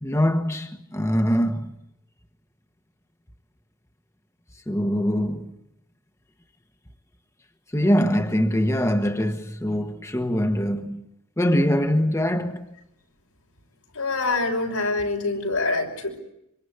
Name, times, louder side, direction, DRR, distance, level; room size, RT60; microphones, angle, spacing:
voice 1, 0.0-1.7 4.7-5.5 7.7-11.1 11.4-12.7, equal, 15° left, 1.3 m, -23 dB
voice 2, 13.9-16.2, left 3 dB, 85° left, 5.7 m, -25 dB
26.0 x 24.5 x 8.2 m
head